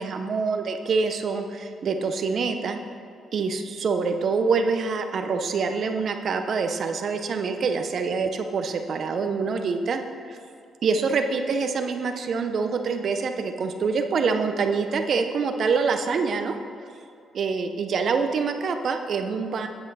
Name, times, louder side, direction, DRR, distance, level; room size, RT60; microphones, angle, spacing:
voice 1, 0.0-2.8 3.3-10.4 10.8-16.5 17.3-19.7, right 5 dB, 55° right, 7 dB, 0.7 m, -25 dB
8.8 x 7.8 x 4.1 m, 2.4 s
cardioid pair, 90°, 0 cm